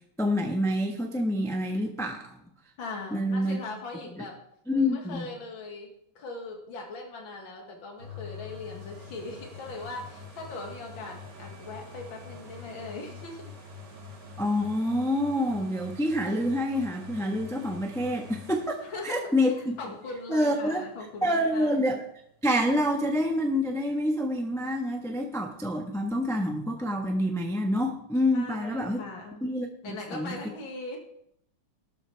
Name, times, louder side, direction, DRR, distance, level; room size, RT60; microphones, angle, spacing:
voice 1, 0.2-2.3 3.1-3.6 4.2-4.3 4.7-5.2 14.4-18.8 19.0-19.6 20.3-20.8 21.2-22.0 22.4-29.0 29.4-30.4, left 1 dB, ahead, 2 dB, 0.8 m, -27 dB
voice 2, 2.8-4.3 4.9-5.9 6.2-13.4 18.8-21.7 28.3-29.4 29.8-31.0, left 3 dB, 65° left, 1 dB, 2.7 m, -40 dB
sound 1, 8.0-21.7 22.2-22.3, left 4 dB, 55° right, 3.1 m, -46 dB
13.5 x 12.5 x 3.4 m, 0.73 s
omnidirectional pair, 2.3 m